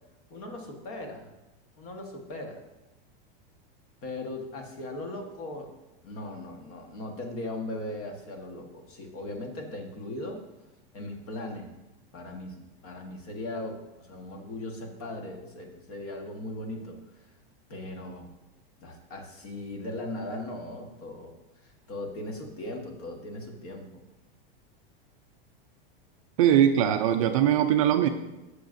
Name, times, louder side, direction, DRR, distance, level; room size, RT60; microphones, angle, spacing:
voice 1, 0.3-1.3 1.8-2.6 4.0-5.7 6.0-10.4 10.9-11.7 12.1-17.0 17.7-18.3 18.8-21.3 21.6-24.0, left 1 dB, 40° left, 3 dB, 1.4 m, -38 dB
voice 2, 26.4-28.1, right 10 dB, 35° right, 6 dB, 0.4 m, -21 dB
14.5 x 6.5 x 2.6 m, 1.0 s
supercardioid pair, 175°, 29 cm